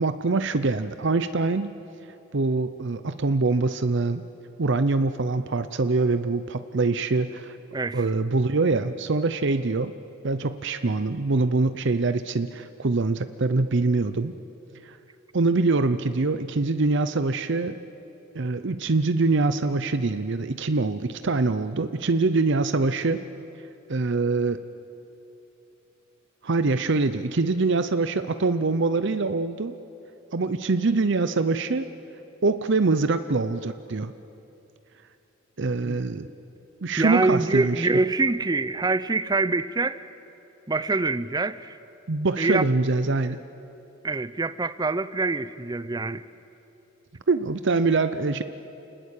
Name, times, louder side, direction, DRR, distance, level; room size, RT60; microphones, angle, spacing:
voice 1, 0.0-1.7 2.3-4.2 4.6-7.6 7.9-9.9 10.2-14.3 14.8-15.0 15.3-17.8 18.3-23.2 23.9-24.6 26.4-29.8 30.3-31.9 32.4-34.1 35.6-36.3 36.8-37.9 42.1-43.4 47.3-48.4, right 3 dB, 60° right, 0.7 m, -24 dB
voice 2, 7.7-8.1 35.8-36.0 37.0-40.1 40.7-41.8 42.4-42.6 44.0-46.2, right 3 dB, 20° right, 0.6 m, -25 dB
29.5 x 20.0 x 8.4 m
head